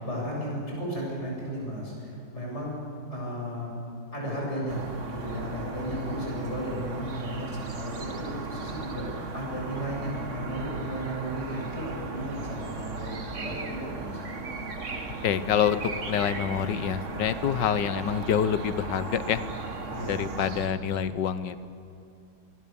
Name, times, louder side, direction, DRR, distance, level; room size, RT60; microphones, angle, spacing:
voice 1, 0.0-2.8 3.1-3.7 4.1-14.3 19.9-20.2 20.7-20.9, equal, 40° left, -3 dB, 8.1 m, -34 dB
sound 1, 4.7-20.7, right 3 dB, 45° right, 2.0 m, -36 dB
voice 2, 15.2-19.4 20.1-21.7, left 8 dB, 85° left, 13 dB, 1.6 m, -27 dB
25.5 x 21.0 x 7.1 m, 2.6 s
omnidirectional pair, 1.9 m